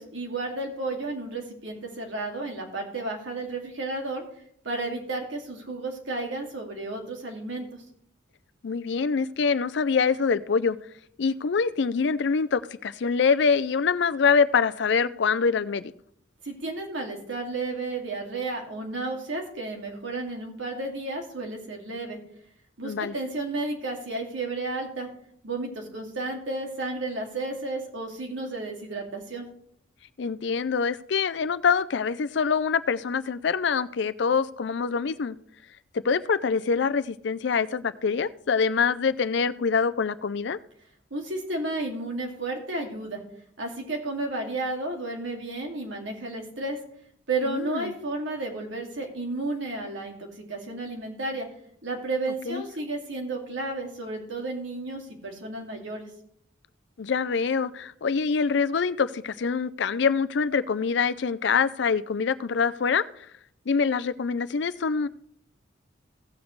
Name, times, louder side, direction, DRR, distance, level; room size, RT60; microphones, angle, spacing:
voice 1, 0.0-4.2 4.6-7.8 16.4-22.2 22.8-25.1 25.4-29.5 41.1-43.2 43.6-46.8 47.3-51.5 51.8-56.1, right 2 dB, 80° right, 1 dB, 2.3 m, -32 dB
voice 2, 8.6-10.8 11.2-15.9 22.8-23.1 30.2-35.4 35.9-40.6 47.4-47.9 52.5-52.6 57.0-63.3 63.7-65.1, left 5 dB, 65° left, 14 dB, 0.4 m, -25 dB
16.5 x 7.2 x 3.2 m, 0.67 s
head